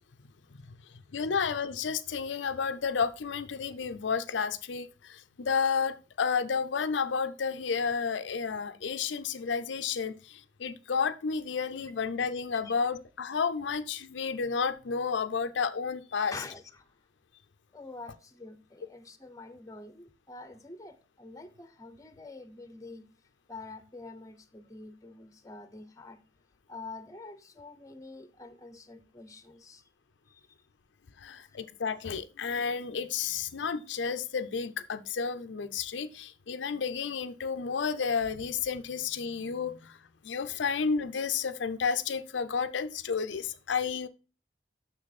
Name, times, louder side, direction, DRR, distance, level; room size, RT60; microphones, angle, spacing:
voice 1, 1.1-16.3 31.2-40.0 40.2-44.1, left 5 dB, 85° left, 0.5 m, -31 dB
voice 2, 16.3-16.8 17.7-23.0 23.5-26.2 26.7-29.8, left 3 dB, 20° left, 0.8 m, -46 dB
6.4 x 6.2 x 4.1 m
head